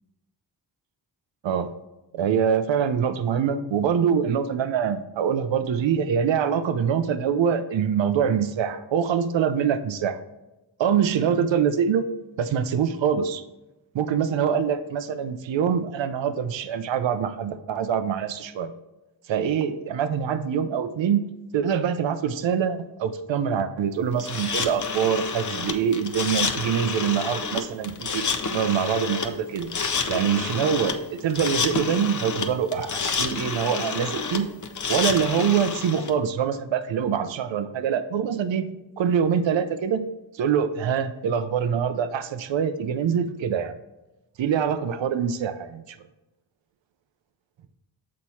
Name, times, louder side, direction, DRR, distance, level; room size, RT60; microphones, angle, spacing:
voice 1, 2.1-10.2 10.8-12.1 12.4-13.4 13.9-18.7 19.3-21.3 21.5-29.7 30.1-34.5 34.9-38.7 39.0-40.1 40.4-43.7 44.4-46.0, right 7 dB, 75° right, 11 dB, 0.6 m, -24 dB
sound 1, 24.2-36.1, left 5 dB, 40° left, 0.7 m, -29 dB
6.5 x 4.2 x 4.2 m, 0.98 s
cardioid pair, 50°, 45 cm